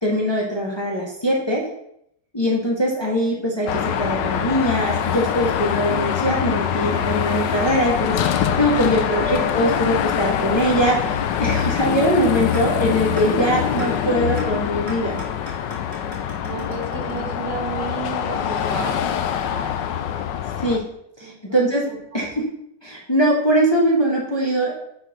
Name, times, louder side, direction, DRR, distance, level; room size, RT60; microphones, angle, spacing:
voice 1, 0.0-1.6 2.3-15.2 20.6-20.9 21.2-21.9 22.1-22.5 22.8-24.8, equal, 15° left, -3 dB, 1.4 m, -22 dB
Car passing by / Traffic noise roadway noise / Engine, 3.7-20.8, left 9 dB, 80° left, 1.3 m, -24 dB
voice 2, 9.1-9.6 16.1-19.8 21.2-22.3, right 4 dB, 75° right, 1 dB, 2.1 m, -33 dB
sound 1, 12.5-12.6 13.2-13.3 13.8-13.9 14.4-14.5 14.9-17.8, equal, 45° right, 3.1 m, -38 dB
6.6 x 4.2 x 6.4 m, 0.75 s
omnidirectional pair, 1.9 m